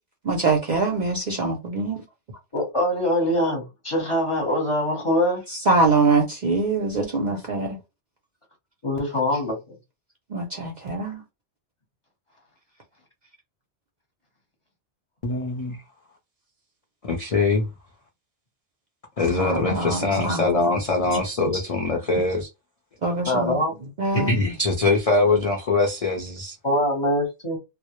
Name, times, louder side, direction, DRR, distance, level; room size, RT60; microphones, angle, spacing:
voice 1, 0.2-2.0 5.7-7.8 10.3-11.2 19.4-20.7 21.5-21.6 23.0-23.6 24.0-24.3, right 3 dB, 50° right, 0.5 m, -23 dB
voice 2, 2.5-5.4 8.8-9.6 21.0-21.1 21.4-21.5 23.3-23.7 26.6-27.6, left 1 dB, 30° left, 0.8 m, -23 dB
voice 3, 15.2-15.7 17.0-17.7 19.2-22.5 24.1-26.5, left 3 dB, 45° left, 0.5 m, -23 dB
2.0 x 2.0 x 2.9 m
omnidirectional pair, 1.2 m